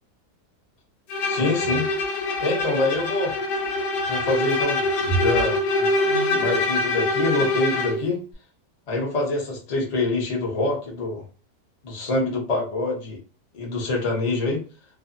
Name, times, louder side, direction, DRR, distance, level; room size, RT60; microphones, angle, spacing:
Bowed string instrument, 1.1-8.0, left 2 dB, 90° left, 1.3 m, -24 dB
voice 1, 1.3-1.8 2.4-3.3 4.1-4.8 5.2-5.9 6.4-8.2 8.9-11.2 11.8-13.2 13.5-14.6, left 2 dB, 35° left, -2 dB, 0.6 m, -25 dB
2.7 x 2.3 x 2.5 m, 0.34 s
omnidirectional pair, 1.8 m